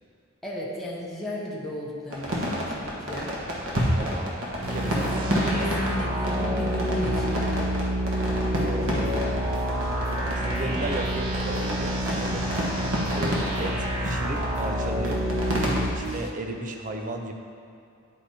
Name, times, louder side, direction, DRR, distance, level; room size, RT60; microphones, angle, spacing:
voice 1, 0.4-3.4 4.8-7.9, left 1 dB, ahead, -6 dB, 0.7 m, -34 dB
sound 1, 2.1-15.8, equal, 65° right, 1.2 m, -30 dB
voice 2, 3.9-5.2 8.5-9.4 10.3-12.5 13.1-15.3 15.8-17.3, right 1 dB, 35° right, 4 dB, 0.5 m, -34 dB
sound 2, 4.6-15.9, right 1 dB, 90° right, 1.2 m, -28 dB
sound 3, 8.3-16.3, left 1 dB, 60° left, 0.7 m, -43 dB
9.9 x 4.9 x 2.8 m, 2.5 s
head